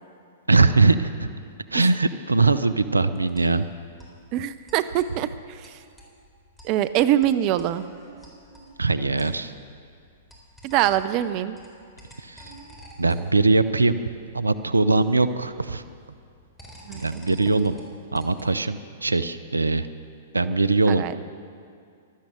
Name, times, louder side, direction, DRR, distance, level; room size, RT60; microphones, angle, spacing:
voice 1, 0.5-1.3 1.7-3.7 8.8-9.5 12.2-12.5 13.0-14.0 14.3-15.8 16.9-17.8 18.1-19.9 20.3-21.2, right 3 dB, 85° right, 13 dB, 0.6 m, -21 dB
sound 1, 2.5-18.7, equal, 10° left, 3.7 m, -50 dB
voice 2, 4.3-5.8 6.6-7.9 10.6-11.6 16.8-17.4 20.9-21.2, right 12 dB, 40° right, 12 dB, 0.5 m, -24 dB
13.0 x 12.0 x 7.7 m, 2.3 s
figure-of-eight pair, 110°, 0 cm